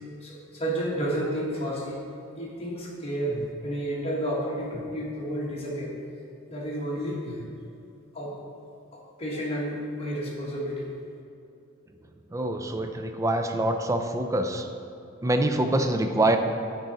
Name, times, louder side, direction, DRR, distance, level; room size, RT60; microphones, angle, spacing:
voice 1, 0.2-2.0 2.4-6.0 6.5-7.4 8.1-8.4 8.9-10.9, right 1 dB, 30° left, -4 dB, 1.3 m, -31 dB
voice 2, 12.3-14.7 15.2-16.4, right 1 dB, 15° right, 6 dB, 0.4 m, -25 dB
10.0 x 3.8 x 3.9 m, 2.5 s
head